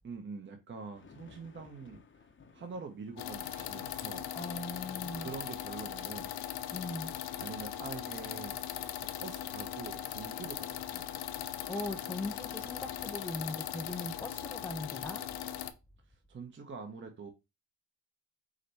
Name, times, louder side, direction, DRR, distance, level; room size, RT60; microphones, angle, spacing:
voice 1, 0.0-2.0 2.5-4.2 5.2-6.3 7.4-8.9 9.2-11.0 11.3-11.5 16.3-17.3, right 5 dB, 25° right, 0.8 m, -45 dB
sound 1, 0.9-6.4, left 5 dB, 25° left, 0.8 m, -60 dB
sound 2, 3.2-15.7, left 11 dB, 55° left, 0.7 m, -39 dB
voice 2, 4.3-5.3 6.7-7.2 11.7-15.2, left 2 dB, 5° left, 0.3 m, -39 dB
5.0 x 2.2 x 4.0 m
supercardioid pair, 65°, 45 cm